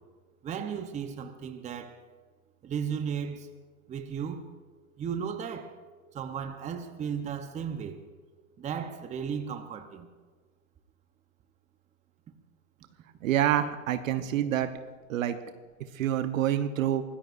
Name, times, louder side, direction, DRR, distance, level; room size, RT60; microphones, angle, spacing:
voice 1, 0.4-2.0 2.6-3.5 3.9-4.4 5.0-5.8 6.1-8.0 8.6-10.1, right 7 dB, 15° right, 0.9 m, -35 dB
voice 2, 13.2-14.7 15.1-15.4 15.9-17.0, right 11 dB, 70° right, 1.1 m, -27 dB
24.5 x 19.0 x 2.6 m
hypercardioid pair, 130°, 41 cm